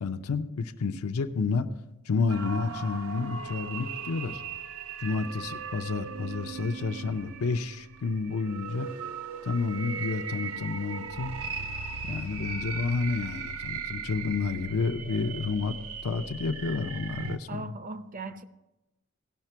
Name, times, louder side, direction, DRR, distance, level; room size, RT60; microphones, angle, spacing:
voice 1, 0.0-1.7 2.1-4.4 5.0-8.9 9.4-11.4 12.0-15.7 16.0-17.7, left 4 dB, 85° left, 6 dB, 0.6 m, -30 dB
sound 1, 2.3-17.4, right 5 dB, 80° right, 0.6 m, -38 dB
voice 2, 17.5-18.4, right 3 dB, 40° right, 11 dB, 0.6 m, -38 dB
17.0 x 5.8 x 4.5 m, 0.99 s
head